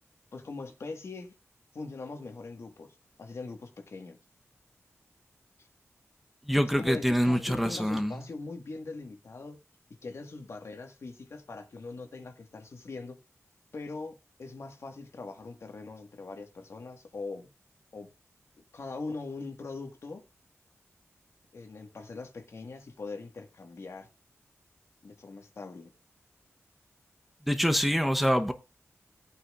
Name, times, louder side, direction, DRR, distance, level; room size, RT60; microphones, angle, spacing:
voice 1, 0.3-1.3 1.7-4.2 6.8-9.6 10.0-13.2 13.7-17.5 17.9-18.1 18.7-20.2 21.5-24.1 25.0-25.9, left 3 dB, 60° left, 1.6 m, -41 dB
voice 2, 6.5-8.1 27.5-28.5, equal, ahead, 0.9 m, -25 dB
17.5 x 8.4 x 2.4 m
wide cardioid pair, 110°, 5 cm